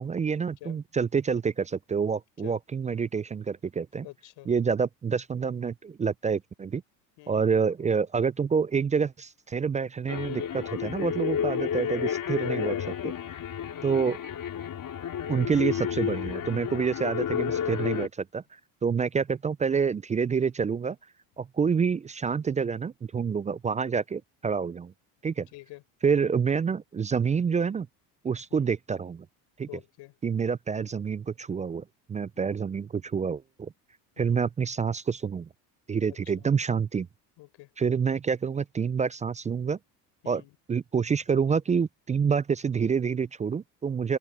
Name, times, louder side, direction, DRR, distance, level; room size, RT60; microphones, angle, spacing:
voice 1, 0.0-4.1 4.5-6.8 7.3-12.8 13.0-13.1 13.8-14.2 15.3-18.4 18.8-21.0 21.4-24.9 25.2-25.5 26.0-27.9 28.2-29.3 29.6-29.7 30.2-33.7 34.2-35.5 35.9-37.1 37.8-39.8 40.3-40.4 40.7-44.2, right 6 dB, 15° right, 0.3 m, -27 dB
voice 2, 4.0-4.5 7.2-7.5 11.8-12.5 13.2-13.5 25.5-25.8 28.5-28.7 29.7-30.2 32.4-32.6 34.2-34.4 36.3-36.5 37.4-37.7 40.2-40.6, left 20 dB, 65° left, 4.9 m, -48 dB
sound 1, 10.1-18.1, left 8 dB, 45° left, 4.2 m, -31 dB
open air
supercardioid pair, 80°, 47 cm